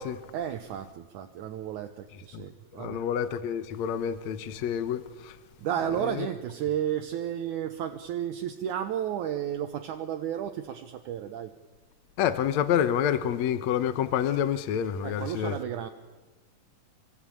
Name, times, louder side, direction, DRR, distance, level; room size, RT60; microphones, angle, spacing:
voice 1, 0.3-3.0 5.6-11.5 15.0-15.9, right 10 dB, 70° right, 2.4 m, -32 dB
voice 2, 2.7-5.4 6.0-6.3 12.2-15.6, left 9 dB, 65° left, 2.3 m, -28 dB
26.0 x 25.5 x 8.8 m
omnidirectional pair, 3.7 m